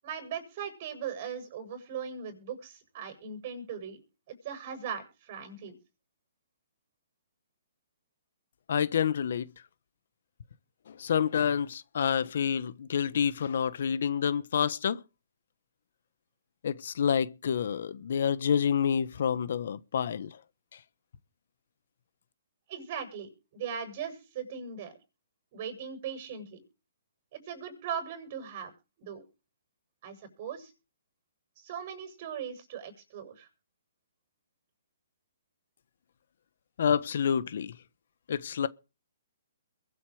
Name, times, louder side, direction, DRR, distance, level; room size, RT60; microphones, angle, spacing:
voice 1, 0.0-4.0 4.3-5.8 22.7-24.9 25.5-26.6 27.3-28.7 29.0-29.2 30.0-30.7 31.6-33.5, right 7 dB, 40° right, 7.8 m, -39 dB
voice 2, 8.7-9.5 10.9-15.0 16.6-20.4 36.8-37.7 38.3-38.7, left 7 dB, 60° left, 1.3 m, -28 dB
22.5 x 8.4 x 5.0 m
hypercardioid pair, 155°, 0 cm